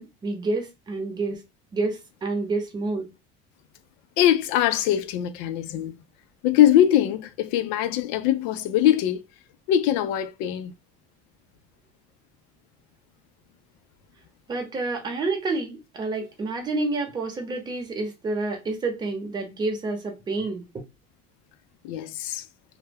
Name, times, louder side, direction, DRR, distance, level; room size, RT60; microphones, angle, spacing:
voice 1, 0.0-1.4 1.7-3.1 14.5-20.6, right 3 dB, 20° right, 0.8 m, -29 dB
voice 2, 4.2-6.0 6.4-9.2 9.7-10.7 21.8-22.5, left 11 dB, 75° left, 0.4 m, -22 dB
2.2 x 2.0 x 3.3 m
cardioid pair, 140°, 20 cm